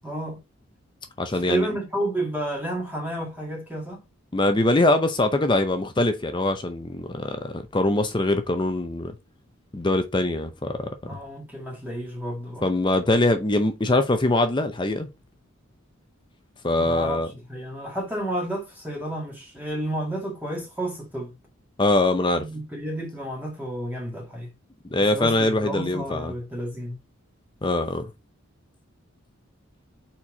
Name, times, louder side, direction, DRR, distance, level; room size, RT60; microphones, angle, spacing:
voice 1, 0.0-0.4 1.4-4.0 11.1-12.7 16.8-17.2 17.5-21.3 22.4-24.5 25.1-27.0, right 1 dB, 10° right, 1.7 m, -31 dB
voice 2, 1.2-1.7 4.3-9.1 9.7-10.9 12.6-15.1 16.6-17.3 21.8-22.4 24.9-26.3 27.6-28.1, left 2 dB, 20° left, 0.6 m, -23 dB
4.5 x 4.3 x 4.8 m
head